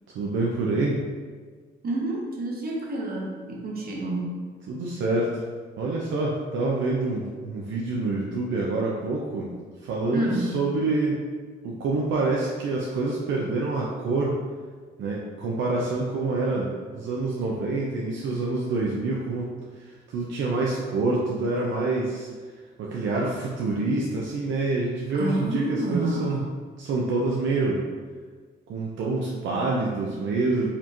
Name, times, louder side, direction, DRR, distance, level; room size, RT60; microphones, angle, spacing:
voice 1, 0.1-1.0 4.7-5.4 5.8-11.2 11.6-14.4 15.0-19.5 19.8-22.3 22.8-26.4 26.8-27.8 28.7-30.7, right 3 dB, 75° right, -3 dB, 0.5 m, -27 dB
voice 2, 1.8-4.4 10.1-10.6 25.1-26.4, right 1 dB, 50° right, -2 dB, 0.9 m, -28 dB
4.2 x 2.9 x 2.6 m, 1.5 s
cardioid pair, 90°, 20 cm